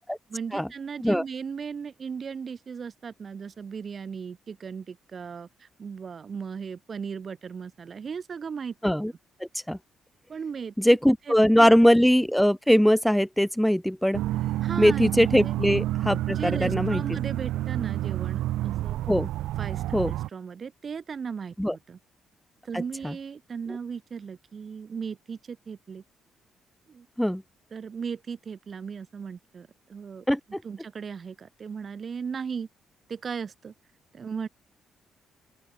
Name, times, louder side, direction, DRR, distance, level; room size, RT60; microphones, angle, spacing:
voice 1, 0.3-8.8 10.3-10.7 11.3-11.7 14.6-15.1 15.4-15.6 16.3-19.0 19.6-22.0 22.6-26.0 26.9-27.1 27.7-30.3 30.6-32.7 33.1-33.7 34.1-34.5, right 6 dB, 45° right, 0.8 m, -37 dB
voice 2, 10.8-14.2 14.8-17.0 19.1-19.3 19.9-20.1 21.6-21.7 23.0-23.1 27.2-27.4 30.3-30.6, equal, ahead, 0.5 m, -21 dB
sound 1, 14.1-20.3, right 15 dB, 85° right, 1.1 m, -29 dB
open air
cardioid pair, 90°, 0 cm